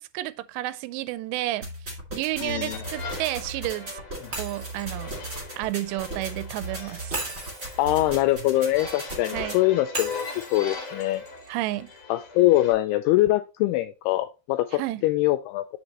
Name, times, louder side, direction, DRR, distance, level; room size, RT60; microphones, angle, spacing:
voice 1, 0.1-1.7 2.1-4.0 4.4-5.1 5.6-7.2 9.3-9.6 11.5-11.9 14.7-15.0, right 17 dB, 85° right, 2.7 m, -31 dB
sound 1, 1.6-9.6, right 2 dB, 25° right, 2.1 m, -37 dB
voice 2, 2.4-2.8 7.8-11.2 12.1-15.8, left 16 dB, 85° left, 2.3 m, -23 dB
sound 2, 2.4-12.7, left 3 dB, 50° left, 2.1 m, -40 dB
Shatter, 4.3-6.4 7.1-9.2 9.9-12.0, right 2 dB, 45° right, 0.8 m, -38 dB
7.2 x 6.7 x 2.9 m
omnidirectional pair, 5.0 m